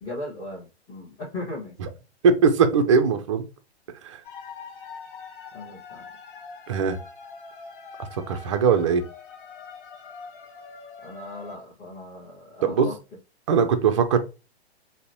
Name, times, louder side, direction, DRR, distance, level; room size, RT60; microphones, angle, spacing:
voice 1, 0.0-1.7 5.5-6.1 11.0-13.0, left 2 dB, 15° left, 0.9 m, -37 dB
voice 2, 2.2-3.4 4.0-4.2 6.7-7.0 8.3-9.0 12.6-12.9 13.5-14.2, right 6 dB, 30° right, 0.4 m, -20 dB
sound 1, 4.2-11.6, left 5 dB, 50° left, 0.7 m, -43 dB
5.0 x 2.1 x 2.6 m
figure-of-eight pair, 115°, 33 cm